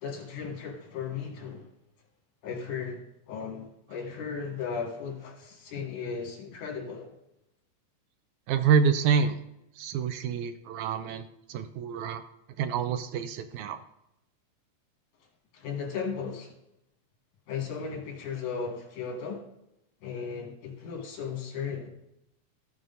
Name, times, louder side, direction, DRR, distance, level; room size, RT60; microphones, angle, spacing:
voice 1, 0.0-1.6 2.4-7.1 15.5-16.5 17.5-19.4 20.0-21.9, left 6 dB, 75° left, 1 dB, 3.2 m, -36 dB
voice 2, 8.5-9.4 9.8-12.2 12.6-13.8, right 6 dB, 80° right, 9 dB, 1.8 m, -27 dB
14.0 x 7.7 x 4.0 m, 0.84 s
omnidirectional pair, 3.6 m